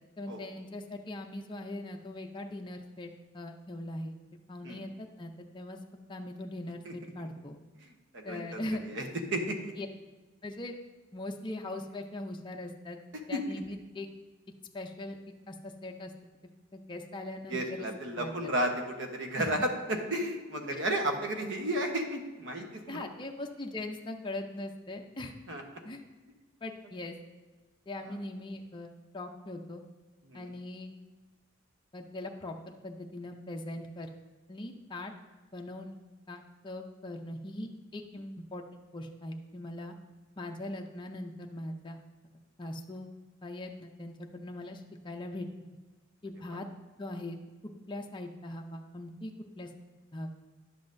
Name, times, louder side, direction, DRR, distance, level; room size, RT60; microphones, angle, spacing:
voice 1, 0.2-4.2 4.5-5.8 6.1-7.6 8.2-8.8 9.8-9.9 10.4-10.7 11.1-13.0 13.3-14.1 14.7-15.2 15.5-16.1 16.7-17.9 18.2-18.3 19.4-19.6 20.6-20.8 22.9-25.3 25.8-26.0 26.6-27.1 27.9-29.8 30.3-30.9 31.9-34.1 34.5-35.1 35.5-36.0 36.3-38.6 38.9-39.9 40.4-42.0 42.6-43.1 43.4-45.5 46.2-46.7 47.0-47.4 47.9-49.3 49.6-49.7 50.1-50.3, left 1 dB, 25° left, 2 dB, 0.5 m, -40 dB
voice 2, 7.8-9.1 9.3-9.7 13.3-13.4 17.5-23.1 25.5-25.6 28.0-28.2 30.3-30.5, right 1 dB, 65° right, 3 dB, 1.0 m, -33 dB
10.5 x 7.4 x 2.6 m, 1.2 s
head